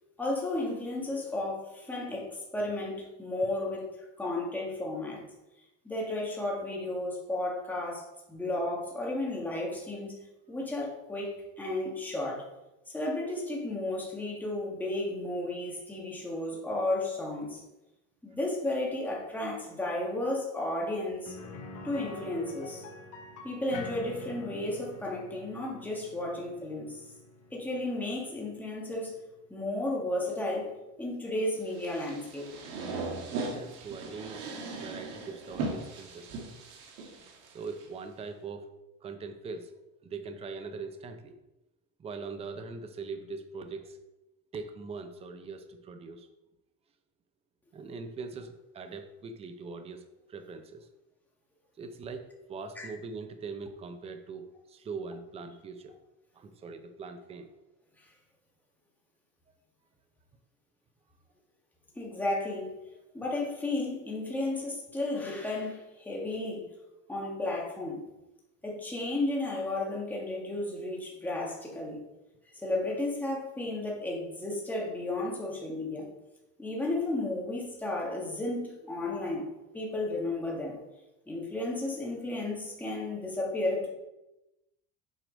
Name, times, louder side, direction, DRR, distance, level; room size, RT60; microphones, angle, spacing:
voice 1, 0.2-5.2 5.8-10.2 10.5-12.4 12.9-17.6 18.2-21.3 21.8-22.8 23.4-27.0 27.5-29.1 29.5-30.7 31.0-32.5 52.8-52.9 62.0-62.7 63.1-66.6 67.1-68.0 68.6-72.0 72.5-76.1 76.6-79.4 79.7-80.8 81.3-83.9, left 2 dB, 5° left, -3 dB, 1.7 m, -33 dB
sound 1, 21.2-31.0 31.3-31.4 33.9-34.0, left 3 dB, 50° left, 1.2 m, -47 dB
sound 2, 31.7-37.8, right 3 dB, 65° right, 1.6 m, -38 dB
voice 2, 33.3-34.4 34.7-36.5 37.5-38.8 39.0-39.7 40.0-41.4 42.0-44.0 44.5-46.3 47.7-50.0 50.3-50.9 51.8-55.9 56.3-57.5, right 4 dB, 20° right, 7 dB, 0.6 m, -41 dB
7.8 x 4.8 x 5.1 m, 0.96 s
cardioid pair, 165°, 32 cm